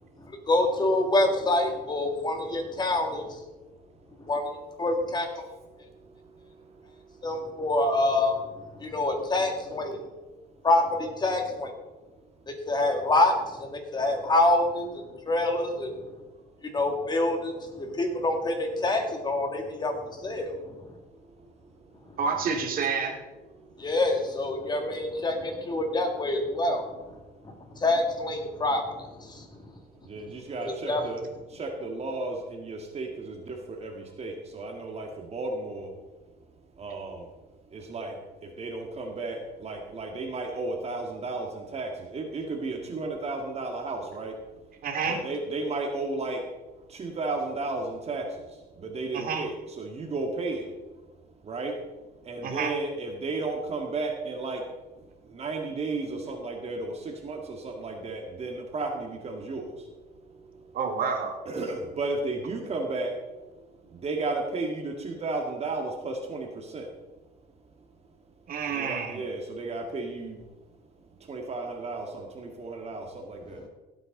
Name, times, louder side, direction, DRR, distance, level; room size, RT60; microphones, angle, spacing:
voice 1, 0.5-3.4 4.2-4.4 4.8-5.3 7.2-8.4 8.8-10.0 10.6-11.7 12.5-16.0 16.7-20.7 23.8-26.8 27.4-29.5 30.6-31.0, left 2 dB, 25° left, 4 dB, 2.2 m, -26 dB
voice 2, 22.2-23.1 44.8-45.2 49.1-49.4 52.4-52.7 60.7-61.4 68.5-69.2, right 5 dB, 60° right, 3 dB, 2.2 m, -28 dB
voice 3, 30.1-31.2 31.5-35.9 36.8-37.2 37.7-38.1 38.6-44.3 45.0-46.4 46.9-48.2 48.8-50.7 51.5-51.7 52.3-54.6 55.3-59.7 61.5-63.1 64.0-66.5 66.7-66.9 68.7-70.4 71.3-73.6, right 3 dB, 40° right, 2 dB, 2.0 m, -33 dB
16.5 x 8.5 x 3.9 m, 1.2 s
cardioid pair, 110°, 17 cm